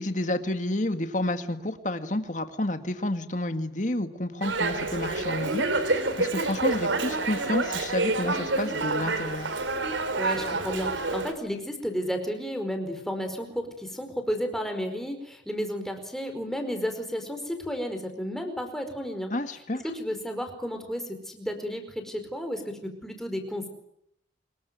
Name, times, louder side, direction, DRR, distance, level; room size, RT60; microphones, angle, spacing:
voice 1, 0.0-9.6 19.3-19.8, left 1 dB, 40° left, 8 dB, 2.0 m, -30 dB
Dog, 4.4-11.3, right 3 dB, 90° right, 4.1 m, -28 dB
voice 2, 10.2-19.3 19.9-23.7, equal, ahead, 5 dB, 4.8 m, -32 dB
26.5 x 22.5 x 9.4 m, 0.77 s
head